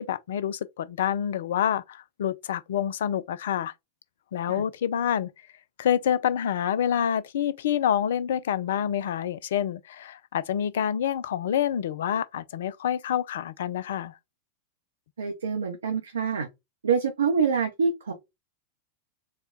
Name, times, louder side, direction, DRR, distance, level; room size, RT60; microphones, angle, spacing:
voice 1, 0.0-3.7 4.3-5.3 5.8-14.1, left 9 dB, 60° left, 0.4 m, -27 dB
voice 2, 15.2-16.5 16.8-18.1, right 6 dB, 70° right, 0.6 m, -26 dB
4.3 x 2.2 x 3.7 m
figure-of-eight pair, 90°, 0 cm